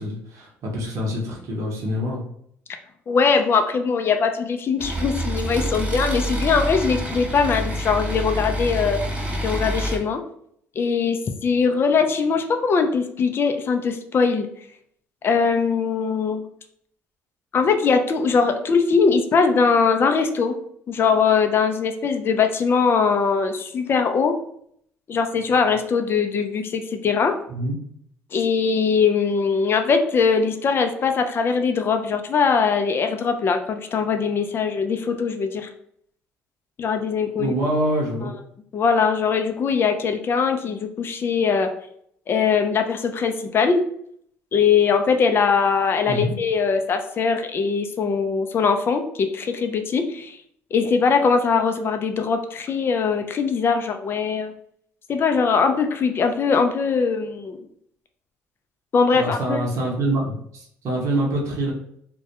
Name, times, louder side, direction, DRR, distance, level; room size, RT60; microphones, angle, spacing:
voice 1, 0.0-2.2 27.5-27.8 37.3-38.3 46.1-46.4 59.1-61.7, right 1 dB, 60° right, -2 dB, 0.8 m, -25 dB
voice 2, 3.1-9.0 9.4-10.2 10.8-14.7 15.2-16.4 17.5-20.6 20.9-24.4 25.1-27.3 28.3-35.7 36.8-37.5 38.2-38.3 38.7-41.7 42.3-43.8 44.5-50.4 50.7-54.5 55.1-57.6 58.9-59.6, left 5 dB, 40° left, 6 dB, 0.4 m, -21 dB
sound 1, 4.8-10.0, right 1 dB, 20° right, 0.7 m, -27 dB
2.2 x 2.1 x 2.8 m, 0.68 s
supercardioid pair, 70°, 6 cm